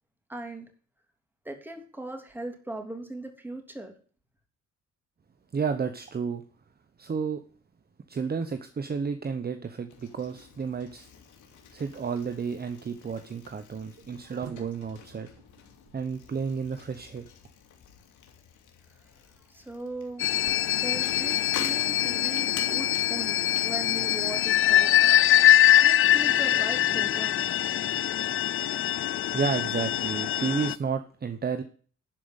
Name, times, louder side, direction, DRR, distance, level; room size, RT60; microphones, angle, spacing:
voice 1, 0.3-0.7 1.4-3.9 19.5-20.3 20.7-25.5 25.8-29.0, right 2 dB, 5° right, 3 dB, 3.0 m, -39 dB
voice 2, 5.5-6.4 7.0-7.4 8.1-11.1 11.7-15.3 15.9-17.2 29.3-31.6, right 5 dB, 30° right, 8 dB, 1.0 m, -31 dB
Bicycle, 9.9-25.4, left 7 dB, 80° left, 2.8 m, -47 dB
sound 1, 13.8-17.0 19.2-21.7, right 8 dB, 70° right, 1.5 m, -53 dB
sound 2, 20.2-30.7, left 12 dB, 45° left, 0.4 m, -23 dB
12.0 x 5.0 x 8.1 m, 0.42 s
cardioid pair, 90°, 30 cm